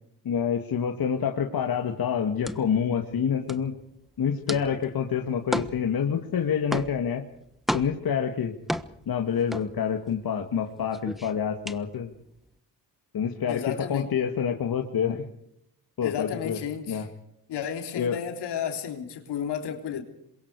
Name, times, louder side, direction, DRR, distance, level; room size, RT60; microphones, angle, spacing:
voice 1, 0.2-3.7 4.2-7.2 7.7-8.5 9.1-12.1 13.1-15.3 16.0-16.6 16.9-17.1 17.9-18.2, left 7 dB, 60° left, 2.2 m, -27 dB
sound 1, 1.6-10.3 10.6-12.5, equal, ahead, 1.3 m, -34 dB
voice 2, 13.5-14.1 16.0-17.1 17.5-20.0, left 8 dB, 80° left, 3.6 m, -32 dB
27.0 x 23.0 x 4.9 m
cardioid pair, 65°, 40 cm